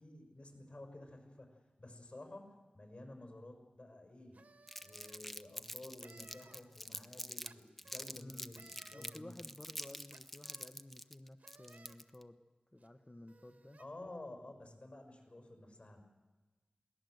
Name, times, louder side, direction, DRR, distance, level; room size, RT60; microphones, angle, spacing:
voice 1, 0.0-4.4 4.8-9.4 13.8-16.0, left 1 dB, 50° left, 3 dB, 6.2 m, -52 dB
sound 1, 4.3-5.2 6.0-6.6 7.4-8.0 8.5-9.2 10.1-10.7 11.4-12.0 12.8-12.9 13.3-13.8, right 3 dB, 70° right, 1.8 m, -61 dB
Crumpling crinkling, 4.7-7.5 7.8-12.2, equal, 5° left, 0.8 m, -46 dB
voice 2, 8.1-12.4 12.7-13.8, left 1 dB, 30° left, 5 dB, 1.1 m, -54 dB
22.5 x 17.0 x 7.9 m, 1.2 s
wide cardioid pair, 55°, 3 cm